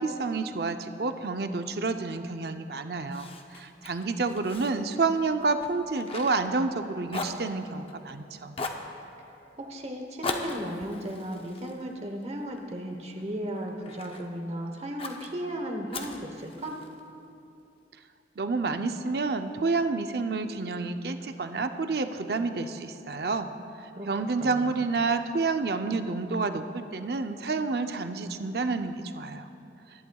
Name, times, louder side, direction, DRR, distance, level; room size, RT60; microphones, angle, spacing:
voice 1, 0.0-8.6 18.4-23.5 24.1-29.5, right 3 dB, 55° right, 8 dB, 0.5 m, -29 dB
Fire, 3.1-6.8 7.1-8.1 8.5-8.9 10.2-12.6 13.1-14.3 15.0-15.3 15.9-17.0, left 3 dB, 30° left, 0.6 m, -39 dB
voice 2, 9.6-16.8 23.9-24.7, equal, 35° right, 3 dB, 1.0 m, -35 dB
22.0 x 11.0 x 2.3 m, 2.7 s
head